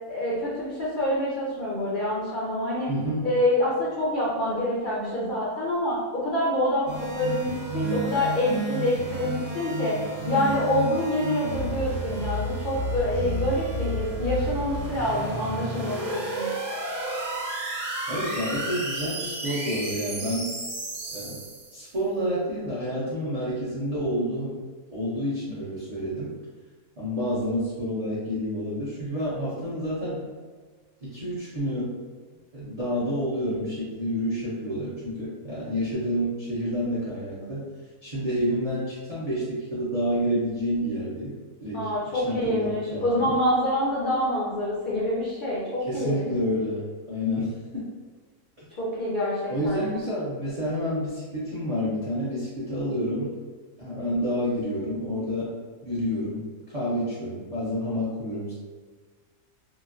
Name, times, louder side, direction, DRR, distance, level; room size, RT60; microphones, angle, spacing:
voice 1, 0.1-2.9 3.2-10.0 10.3-16.5 41.7-46.3 48.8-49.9, left 1 dB, 60° left, -7 dB, 0.5 m, -26 dB
voice 2, 2.9-3.3 18.1-20.5 21.1-21.4 21.7-24.6 24.9-26.3 27.0-30.3 31.0-31.9 32.5-37.6 38.0-41.3 41.6-41.9 42.1-43.3 45.8-47.8 49.5-53.3 53.8-55.5 55.8-56.5 56.7-58.5, equal, 40° right, -10 dB, 0.5 m, -29 dB
sound 1, 6.9-21.8, right 2 dB, 75° right, 1.0 m, -32 dB
2.9 x 2.5 x 2.5 m, 1.5 s
omnidirectional pair, 1.5 m